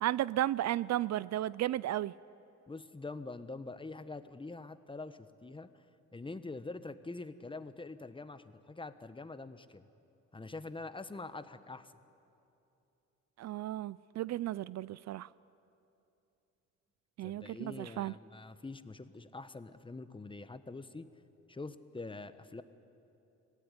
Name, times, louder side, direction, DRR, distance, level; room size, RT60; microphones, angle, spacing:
voice 1, 0.0-2.1 13.4-15.3 17.2-18.1, right 13 dB, 60° right, 20 dB, 0.5 m, -34 dB
voice 2, 2.7-5.8 6.1-9.8 10.3-11.9 17.2-21.1 21.5-22.6, left 3 dB, 15° left, 12 dB, 1.1 m, -45 dB
24.0 x 17.5 x 9.7 m, 2.8 s
cardioid pair, 90°, 30 cm